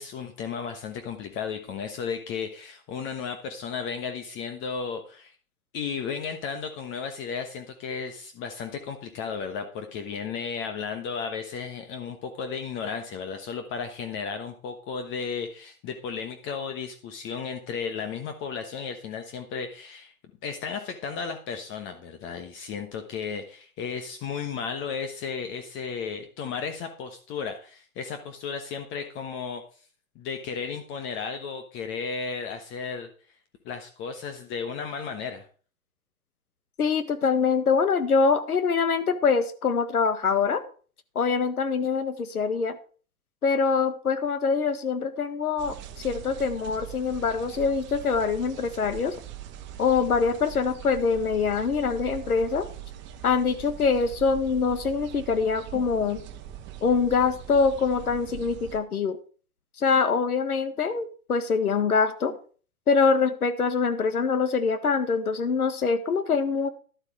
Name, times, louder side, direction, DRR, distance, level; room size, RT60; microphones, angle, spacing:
voice 1, 0.0-5.3 5.7-20.1 20.4-29.6 30.1-33.1 33.6-35.5, left 6 dB, 25° left, 6 dB, 1.2 m, -34 dB
voice 2, 36.8-40.6 41.2-42.8 43.4-49.1 49.8-52.7 53.2-56.2 56.8-59.2 59.8-62.3 62.9-66.7, left 5 dB, 80° left, 11 dB, 1.7 m, -24 dB
sound 1, 45.6-58.8, right 10 dB, 25° right, 1.5 m, -42 dB
12.0 x 8.1 x 4.8 m, 0.40 s
hypercardioid pair, 120°, 43 cm